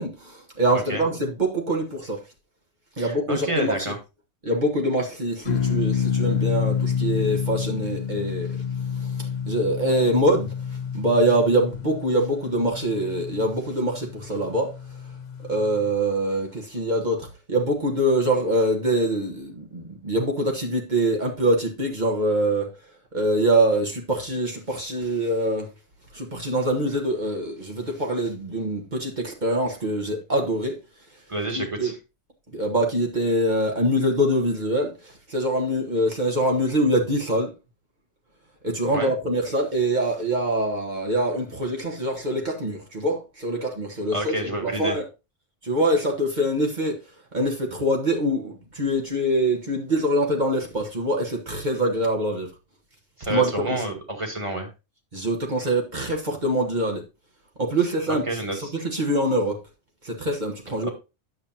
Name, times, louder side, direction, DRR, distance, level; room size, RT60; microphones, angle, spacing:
voice 1, 0.0-2.2 3.0-3.9 4.4-8.6 9.0-10.5 10.9-14.7 15.5-22.7 23.1-25.7 26.1-30.8 31.5-31.9 32.5-37.5 38.6-45.0 45.6-47.0 47.3-52.5 53.3-53.8 55.1-57.0 57.6-58.2 58.5-59.6 60.0-60.9, right 1 dB, 50° right, 1.5 m, -24 dB
voice 2, 3.0-4.0 31.3-31.9 38.9-39.1 44.1-45.0 53.2-54.7 58.1-58.7 60.8-60.9, right 1 dB, 30° right, 1.9 m, -29 dB
sound 1, 5.5-16.0, left 7 dB, 55° left, 0.6 m, -29 dB
9.6 x 7.0 x 2.8 m
omnidirectional pair, 1.0 m